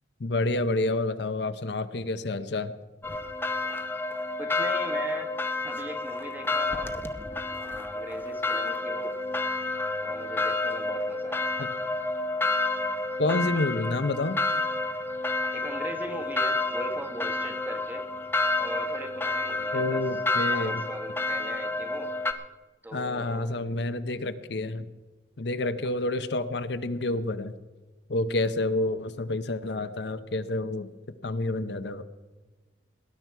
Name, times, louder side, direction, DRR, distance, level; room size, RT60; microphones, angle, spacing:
voice 1, 0.2-2.7 11.6-11.7 13.2-14.4 19.7-20.8 22.9-24.9 25.4-27.5 28.1-30.9 31.2-32.0, left 2 dB, 65° left, 12 dB, 0.7 m, -29 dB
sound 1, 3.0-22.3, left 2 dB, 10° left, 0.7 m, -30 dB
voice 2, 4.4-5.3 5.7-6.9 7.5-9.2 10.0-11.6 15.5-18.1 18.6-20.0 20.5-22.1 22.8-23.5, equal, 10° right, 5 dB, 1.2 m, -40 dB
19.0 x 11.0 x 4.6 m, 1.2 s
head